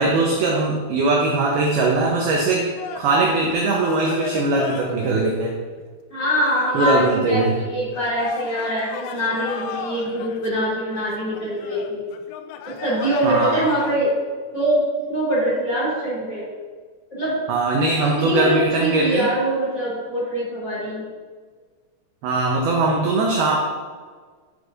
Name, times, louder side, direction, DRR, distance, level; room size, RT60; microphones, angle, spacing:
voice 1, 0.0-2.7 3.0-5.6 6.7-7.6 13.2-13.6 17.5-19.3 22.2-23.6, right 3 dB, 85° right, -1 dB, 2.2 m, -20 dB
sound 1, 2.8-5.2 5.8-5.9 6.4-14.0, left 8 dB, 85° left, 3.2 m, -35 dB
voice 2, 6.1-12.1 12.6-14.1 14.5-16.4 17.1-17.4 18.0-21.0, equal, 30° left, -7 dB, 2.6 m, -23 dB
11.5 x 8.0 x 2.6 m, 1.5 s
omnidirectional pair, 5.6 m